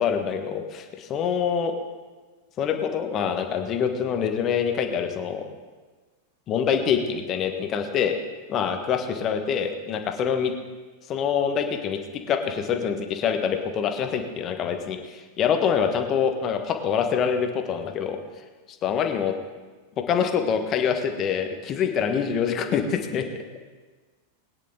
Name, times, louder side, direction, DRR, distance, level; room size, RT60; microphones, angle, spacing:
voice 1, 0.0-1.7 2.6-5.4 6.5-8.2 8.5-10.5 11.1-18.2 18.8-19.3 20.0-23.3, left 7 dB, 30° left, 6 dB, 1.4 m, -25 dB
21.0 x 10.0 x 3.8 m, 1.4 s
figure-of-eight pair, 90°, 0 cm